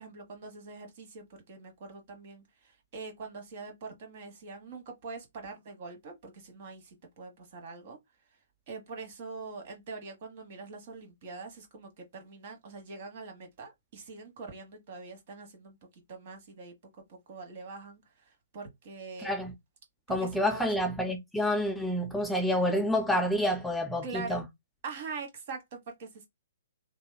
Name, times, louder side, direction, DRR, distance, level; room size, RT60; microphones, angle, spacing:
voice 1, 0.0-8.0 8.7-19.3 20.1-20.7 24.0-24.4 24.8-26.3, right 4 dB, 50° right, 1.2 m, -44 dB
voice 2, 19.2-19.5 20.1-24.4, left 1 dB, 5° left, 0.4 m, -28 dB
2.8 x 2.4 x 2.2 m
hypercardioid pair, 135°, 0 cm